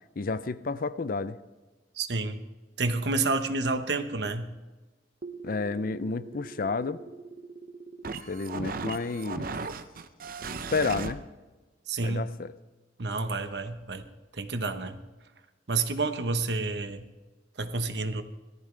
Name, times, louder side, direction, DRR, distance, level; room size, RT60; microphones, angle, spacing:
voice 1, 0.2-1.4 5.4-7.0 8.3-9.5 10.7-11.2 12.0-12.5, left 4 dB, 55° left, 15 dB, 0.5 m, -30 dB
voice 2, 2.0-2.4 2.8-4.5 11.9-12.3 13.0-14.0 14.3-15.0 15.7-17.1 17.6-18.2, right 3 dB, 70° right, 8 dB, 1.0 m, -29 dB
sound 1, 5.2-11.1, right 4 dB, 55° right, 0.7 m, -38 dB
18.0 x 14.0 x 3.3 m, 1.2 s
head